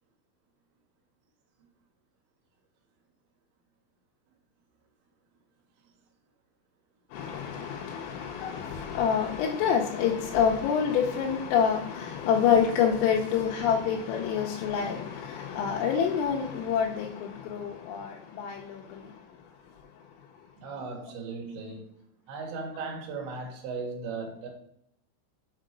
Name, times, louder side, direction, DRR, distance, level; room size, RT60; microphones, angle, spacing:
voice 1, 7.1-20.3, left 7 dB, 90° left, 3.3 m, -27 dB
voice 2, 20.6-21.9 22.3-24.5, right 4 dB, 65° right, 2.7 m, -37 dB
7.7 x 3.7 x 5.1 m
omnidirectional pair, 5.8 m